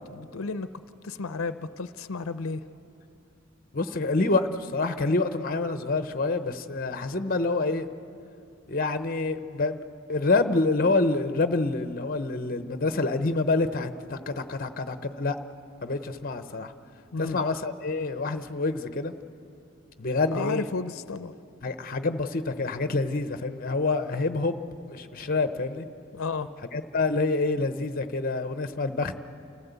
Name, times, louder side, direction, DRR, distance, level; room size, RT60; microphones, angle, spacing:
voice 1, 0.1-0.7 1.0-2.6 17.1-17.4 20.3-21.3 26.1-26.5, left 4 dB, 85° left, 12 dB, 0.6 m, -32 dB
voice 2, 3.7-7.9 8.7-9.8 10.1-15.4 15.8-16.7 17.2-19.1 20.0-20.7 21.6-25.9 26.7-29.1, left 3 dB, 45° left, 10 dB, 0.8 m, -27 dB
28.0 x 15.0 x 8.1 m, 2.7 s
head